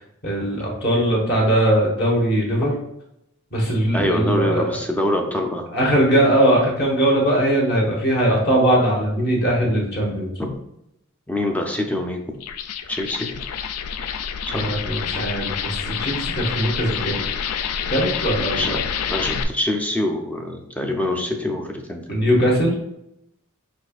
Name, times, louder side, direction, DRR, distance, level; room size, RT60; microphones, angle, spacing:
voice 1, 0.2-2.7 3.5-4.8 5.7-10.3 14.5-17.2 17.9-18.8 22.1-22.8, right 1 dB, 45° left, -3 dB, 1.1 m, -20 dB
voice 2, 3.9-5.7 10.4-10.6 11.3-12.2 12.9-13.3 14.5-14.8 18.6-18.8 19.1-22.2, left 1 dB, 5° left, 3 dB, 0.4 m, -25 dB
sound 1, 12.3-19.4, left 7 dB, 90° left, 0.4 m, -28 dB
5.0 x 4.2 x 2.4 m, 0.82 s
head